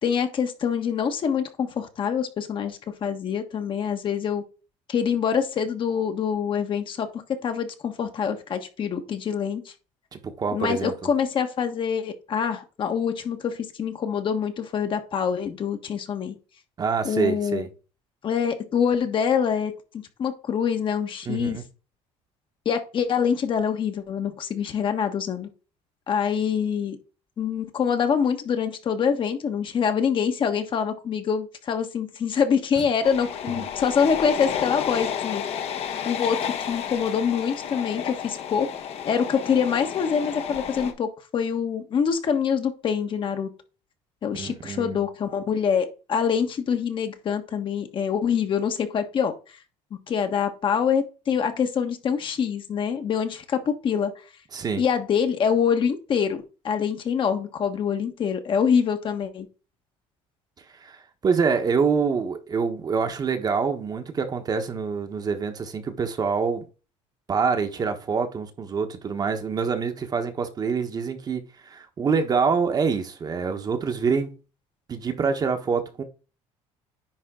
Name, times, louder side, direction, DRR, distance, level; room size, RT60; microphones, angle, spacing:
voice 1, 0.0-4.4 4.9-9.7 10.5-16.3 17.0-17.7 18.2-21.6 22.6-25.5 26.1-27.0 27.4-35.4 36.0-36.4 36.7-38.7 39.0-43.5 44.2-49.3 50.1-54.1 54.8-59.5, left 7 dB, 45° left, 1.5 m, -25 dB
voice 2, 10.1-10.9 16.8-17.7 21.3-21.6 33.6-33.7 44.4-45.0 54.5-54.8 60.7-66.6 67.3-74.3 74.9-76.0, right 5 dB, 35° right, 1.3 m, -26 dB
sound 1, 33.0-40.9, left 8 dB, 60° left, 1.4 m, -31 dB
10.0 x 3.8 x 3.8 m
cardioid pair, 120°, 12 cm